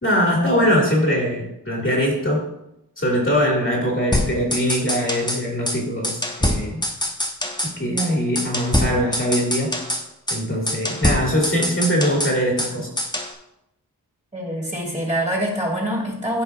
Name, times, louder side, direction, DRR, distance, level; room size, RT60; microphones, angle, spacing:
voice 1, 0.0-2.4 3.0-6.8 7.8-9.7 10.3-12.9, equal, 30° left, -3 dB, 2.2 m, -22 dB
sound 1, 4.1-5.4 5.7-5.8 6.0-7.7 8.0-8.1 8.4-10.0 10.3-10.4 10.7-12.7 13.0-13.3, left 1 dB, 10° left, 0.9 m, -24 dB
voice 2, 14.3-16.4, equal, 20° right, -4 dB, 2.2 m, -25 dB
12.5 x 5.0 x 2.4 m, 0.84 s
wide cardioid pair, 55°, 39 cm